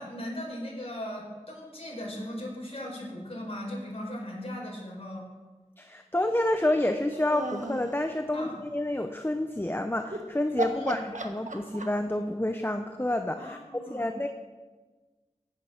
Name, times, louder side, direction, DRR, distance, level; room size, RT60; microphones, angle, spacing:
voice 1, 0.0-5.3 8.3-8.5 10.7-11.0 13.4-14.1, left 1 dB, 50° left, -3 dB, 5.3 m, -38 dB
voice 2, 5.8-14.3, left 1 dB, 15° left, 6 dB, 0.9 m, -29 dB
sound 1, 6.5-7.9 10.0-10.2 10.6-12.1, right 2 dB, 70° right, 1.4 m, -35 dB
15.5 x 9.8 x 6.1 m, 1.3 s
wide cardioid pair, 45°, 13 cm